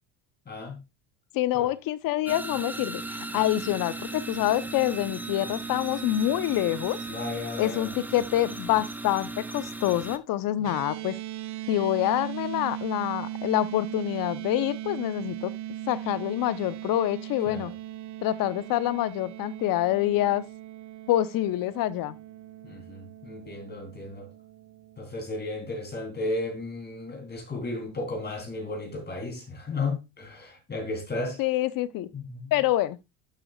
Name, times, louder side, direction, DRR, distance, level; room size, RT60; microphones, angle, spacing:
voice 1, 0.5-0.8 1.5-1.7 7.1-7.9 17.5-17.7 22.6-24.3 25.0-31.4 32.1-32.5, left 2 dB, 25° left, 3.4 m, -34 dB
voice 2, 1.3-7.0 7.6-11.2 11.7-15.5 15.9-17.7 18.2-20.4 21.1-22.2 31.4-32.1 32.5-33.0, left 14 dB, 60° left, 0.9 m, -26 dB
sound 1, 2.3-10.2, right 2 dB, 5° right, 0.7 m, -36 dB
sound 2, 10.6-25.0, right 13 dB, 50° right, 0.7 m, -39 dB
11.5 x 6.4 x 2.4 m
supercardioid pair, 105°, 39 cm